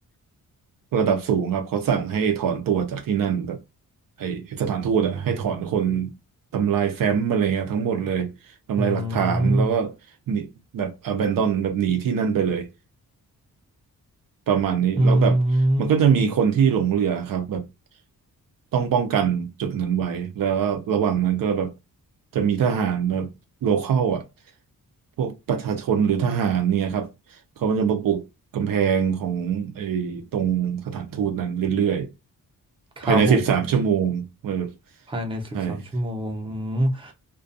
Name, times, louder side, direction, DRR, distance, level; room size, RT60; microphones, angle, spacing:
voice 1, 0.9-3.6 4.2-6.1 6.5-8.3 8.7-9.9 10.3-10.5 10.7-12.7 14.5-15.4 15.8-17.6 18.7-21.7 22.3-23.3 23.6-24.2 25.2-27.1 27.6-28.2 28.5-32.1 33.0-34.7 35.5-35.8, right 7 dB, 70° right, 0.6 m, -23 dB
voice 2, 8.8-9.7 15.0-16.3 33.0-33.6 35.1-37.1, right 1 dB, 15° right, 0.6 m, -23 dB
2.4 x 2.2 x 2.5 m
wide cardioid pair, 125°, 35 cm